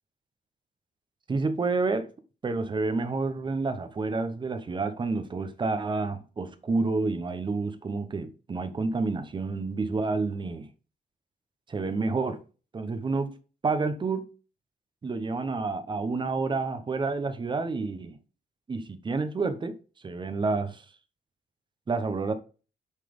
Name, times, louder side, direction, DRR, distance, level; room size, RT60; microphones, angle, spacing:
voice 1, 1.3-2.1 2.4-10.7 11.7-12.4 12.7-13.3 13.6-14.3 15.0-18.2 18.7-19.8 20.0-20.8 21.9-22.3, right 3 dB, 25° right, 0.8 m, -29 dB
8.2 x 4.0 x 5.2 m
cardioid pair, 135°, 18 cm